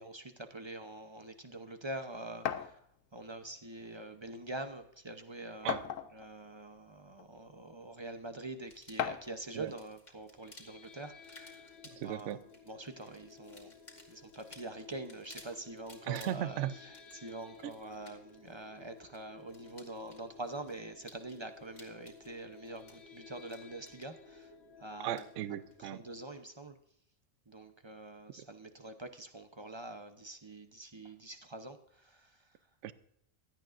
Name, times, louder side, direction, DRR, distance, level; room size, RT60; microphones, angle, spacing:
voice 1, 0.0-2.9 3.1-5.8 6.1-11.7 12.0-12.4 12.7-13.7 14.1-24.5 24.8-25.2 25.8-26.8 27.5-32.5, right 2 dB, 25° right, 8 dB, 0.6 m, -45 dB
sound 1, 2.5-2.7 3.9-4.0 4.4-4.5 5.7-6.3 7.2-7.3 9.0-9.4, left 9 dB, 85° left, 1.1 m, -35 dB
sound 2, 8.6-25.8, left 2 dB, 35° left, 2.1 m, -59 dB
sound 3, 10.3-26.5, left 6 dB, 55° left, 1.5 m, -56 dB
voice 2, 12.0-12.4 16.1-16.7 17.6-17.7 25.0-26.0 32.8-32.9, right 12 dB, 70° right, 15 dB, 0.9 m, -36 dB
16.5 x 12.0 x 2.5 m, 0.71 s
omnidirectional pair, 1.3 m